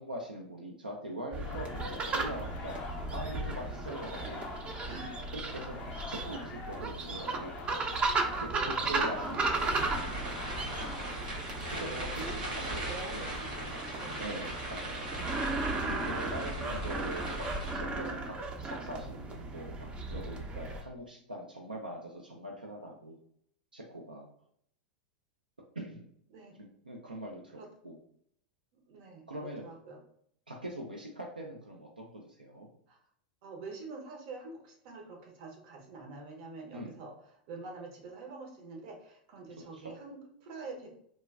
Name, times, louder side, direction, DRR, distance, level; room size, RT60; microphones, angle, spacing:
voice 1, 0.0-4.6 5.3-5.8 6.1-7.6 8.4-9.8 11.8-12.3 12.7-12.8 13.1-13.3 14.2-15.2 15.8-17.5 17.7-23.2 23.7-24.3 25.8-26.1 26.9-27.6 27.8-28.0 29.3-29.6 30.5-32.7 36.7-37.0 39.6-39.9, right 1 dB, 90° right, -1 dB, 0.4 m, -42 dB
sound 1, 1.3-20.8, right 3 dB, 25° right, 0.4 m, -35 dB
sound 2, 1.4-11.9, left 4 dB, 35° left, 0.4 m, -46 dB
voice 2, 8.9-9.5 10.4-10.6 12.1-14.3 26.3-26.6 27.6-27.7 28.7-30.0 32.9-33.0 33.4-40.9, right 3 dB, 55° right, 1 dB, 0.7 m, -46 dB
sound 3, 9.5-17.7, right 1 dB, 70° right, 1.4 m, -39 dB
3.1 x 2.2 x 2.3 m, 0.66 s
figure-of-eight pair, 90°, 5 cm